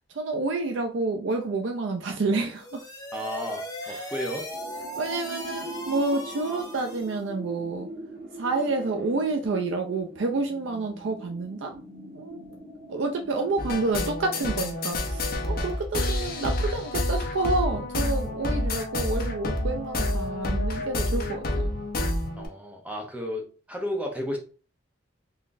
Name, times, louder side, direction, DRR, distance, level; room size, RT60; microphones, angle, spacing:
voice 1, 0.2-2.8 3.9-4.1 5.0-7.9 8.4-11.7 12.1-12.4 12.9-21.7, right 3 dB, 70° right, 0.5 m, -29 dB
sound 1, 2.4-7.2, left 1 dB, 20° left, 1.0 m, -38 dB
voice 2, 3.1-4.4 22.3-24.4, equal, 5° right, 0.9 m, -33 dB
sound 2, 4.5-14.7, right 1 dB, 55° right, 1.1 m, -42 dB
sound 3, 13.6-22.5, left 1 dB, 50° left, 0.8 m, -28 dB
3.9 x 3.1 x 2.5 m
head